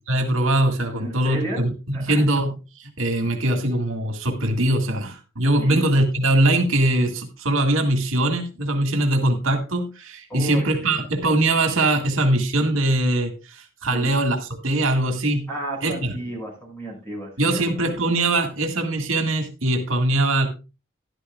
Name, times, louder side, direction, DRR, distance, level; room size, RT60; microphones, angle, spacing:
voice 1, 0.1-15.5 15.8-16.1 17.4-20.5, right 1 dB, 85° right, 5 dB, 1.8 m, -22 dB
voice 2, 1.0-1.7 1.9-2.2 5.6-5.8 10.3-11.0 13.9-14.1 15.5-17.7, right 1 dB, 10° left, 0 dB, 6.0 m, -33 dB
13.0 x 11.5 x 2.4 m, 0.30 s
head